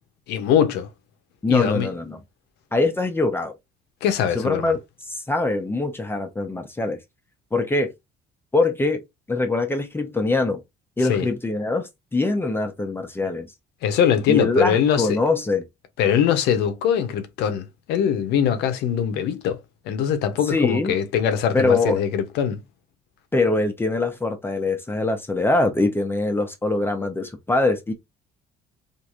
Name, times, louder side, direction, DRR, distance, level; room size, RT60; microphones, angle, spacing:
voice 1, 0.3-0.9 1.5-1.9 4.0-4.7 11.1-11.3 13.8-15.2 16.0-19.6 19.9-22.6, left 8 dB, 85° left, 0.7 m, -22 dB
voice 2, 1.4-2.2 2.7-3.5 4.3-4.8 5.1-7.0 7.5-7.9 8.5-9.0 9.3-10.6 11.0-13.5 14.3-15.6 20.5-21.0 21.5-22.0 23.3-27.9, left 2 dB, 15° left, 0.6 m, -23 dB
3.1 x 2.5 x 2.4 m
cardioid pair, 110°, 17 cm